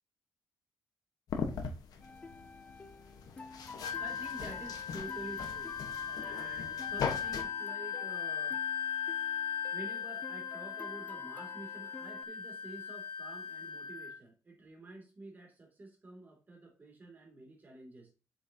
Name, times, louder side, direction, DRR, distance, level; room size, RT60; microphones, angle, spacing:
sound 1, 1.3-7.4, left 6 dB, 65° left, 1.3 m, -41 dB
sound 2, 2.0-12.2, left 3 dB, 20° left, 0.5 m, -50 dB
Wind instrument woodwind instrument, 3.8-14.2, left 8 dB, 80° left, 0.9 m, -38 dB
voice 1, 4.0-5.8 6.0-8.6 9.7-18.1, right 2 dB, 25° right, 1 dB, 2.9 m, -49 dB
7.9 x 6.5 x 2.9 m, 0.33 s
cardioid pair, 150°, 7 cm